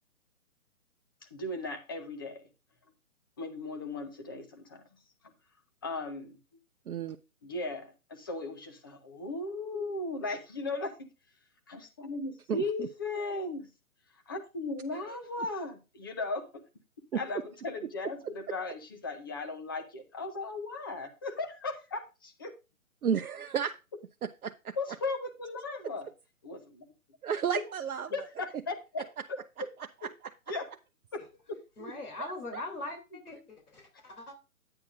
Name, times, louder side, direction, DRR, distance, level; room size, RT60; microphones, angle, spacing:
voice 1, 1.2-2.4 3.4-4.8 5.2-5.3 5.8-6.4 7.4-11.1 11.7-13.7 14.3-16.6 17.1-22.5 24.8-26.1 26.4-26.9 28.1-29.0 29.6-29.7 30.5-30.7 31.1-31.2 31.5-31.9, left 2 dB, 15° left, 0.6 m, -37 dB
voice 2, 6.9-7.2 12.5-12.9 15.0-15.2 17.1-17.2 23.0-23.7 24.2-24.7 27.2-28.1 32.2-32.6, right 7 dB, 80° right, 0.7 m, -32 dB
voice 3, 31.8-34.3, left 2 dB, 90° left, 2.9 m, -41 dB
10.5 x 8.8 x 2.4 m
hypercardioid pair, 145°, 43 cm